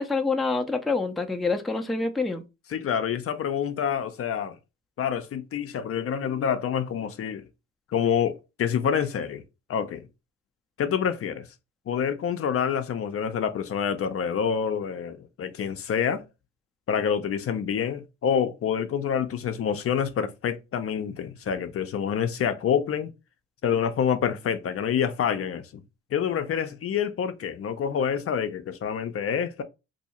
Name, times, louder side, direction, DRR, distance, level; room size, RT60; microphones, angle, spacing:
voice 1, 0.0-2.4, left 3 dB, ahead, 0.5 m, -26 dB
voice 2, 2.7-4.6 5.0-7.5 7.9-9.4 9.7-10.1 10.8-11.5 11.9-16.3 16.9-23.1 23.6-25.8 26.1-29.6, left 8 dB, 50° left, 0.5 m, -27 dB
2.7 x 2.7 x 4.2 m
cardioid pair, 90°, 30 cm